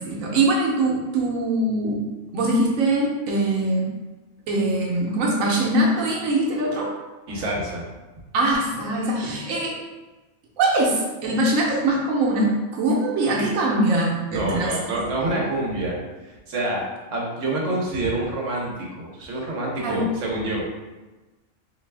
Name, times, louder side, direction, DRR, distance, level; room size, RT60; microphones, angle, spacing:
voice 1, 0.0-2.0 2.3-3.9 4.5-6.9 8.3-9.8 10.6-14.7 15.2-15.4 19.8-20.0, right 2 dB, 85° right, -3 dB, 1.1 m, -22 dB
voice 2, 7.3-7.9 14.3-15.9 16.2-16.8 17.1-20.6, right 2 dB, 70° right, -2 dB, 1.2 m, -27 dB
3.3 x 2.8 x 3.2 m, 1.2 s
omnidirectional pair, 1.4 m